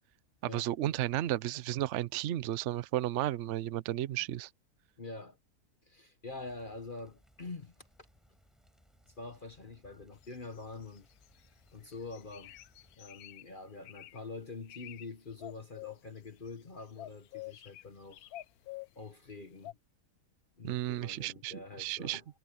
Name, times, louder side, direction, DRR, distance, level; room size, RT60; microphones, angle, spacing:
voice 1, 0.5-4.5 20.6-22.2, right 13 dB, 65° right, 0.8 m, -33 dB
voice 2, 3.9-4.2 5.0-5.4 5.8-7.7 9.2-11.1 11.7-12.6 13.0-18.3 18.9-19.8 20.6-22.2, left 3 dB, 35° left, 1.3 m, -45 dB
Rain, 6.3-12.9, equal, ahead, 5.6 m, -66 dB
sound 1, 10.2-11.5 11.9-13.4 13.8-14.2 14.6-15.1 15.3-16.6 17.0-19.1 19.6-19.7, left 15 dB, 75° left, 1.1 m, -48 dB
omnidirectional pair, 1.6 m